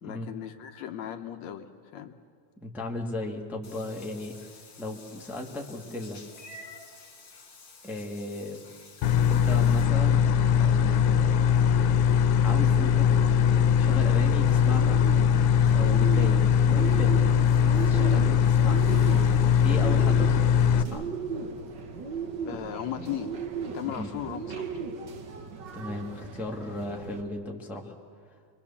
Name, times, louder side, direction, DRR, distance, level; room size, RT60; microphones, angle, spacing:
voice 1, 0.0-2.2 18.0-18.4 22.4-23.3 23.7-24.8, left 10 dB, 70° left, 6 dB, 2.1 m, -37 dB
voice 2, 2.6-4.5 4.8-6.2 7.8-8.6 9.3-10.2 10.5-11.5 12.4-13.1 13.5-15.0 15.7-17.2 17.8-18.9 19.6-21.1 23.9-24.1 25.7-27.9, left 1 dB, ahead, 0 dB, 1.4 m, -36 dB
Meow / Water / Bathtub (filling or washing), 3.6-9.8, left 3 dB, 45° left, 3.3 m, -50 dB
sound 1, 9.0-20.8, left 8 dB, 90° left, 2.3 m, -21 dB
Bird, 14.5-27.2, right 5 dB, 45° right, 1.6 m, -37 dB
27.0 x 23.0 x 7.2 m, 2.2 s
omnidirectional pair, 3.4 m